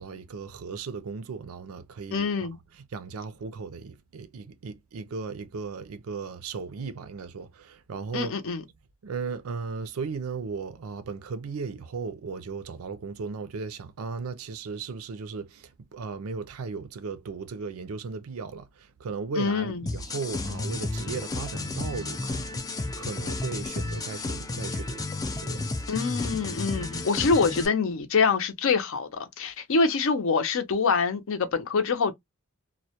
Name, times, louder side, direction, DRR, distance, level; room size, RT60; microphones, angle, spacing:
voice 1, 0.0-2.3 2.7-8.4 9.0-25.1 25.4-25.8, right 5 dB, 75° right, 0.4 m, -36 dB
voice 2, 2.1-2.6 8.1-8.6 19.4-19.8 25.9-32.1, left 4 dB, 65° left, 0.5 m, -25 dB
sound 1, 19.9-27.7, left 2 dB, 15° left, 0.3 m, -32 dB
2.1 x 2.1 x 2.7 m
head